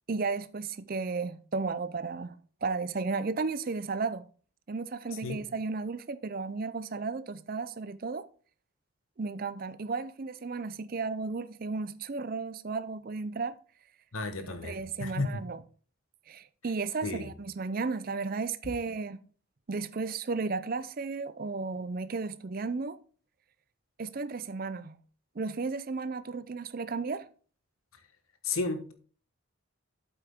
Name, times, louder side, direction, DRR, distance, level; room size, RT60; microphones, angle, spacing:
voice 1, 0.1-4.3 4.7-8.3 9.2-13.6 14.4-15.6 16.3-19.2 19.7-23.0 24.0-25.0 25.4-27.3, right 4 dB, 45° right, 0.5 m, -34 dB
voice 2, 14.1-15.4 17.0-17.3 28.4-28.9, left 3 dB, 85° left, 1.3 m, -33 dB
8.2 x 8.1 x 3.6 m
head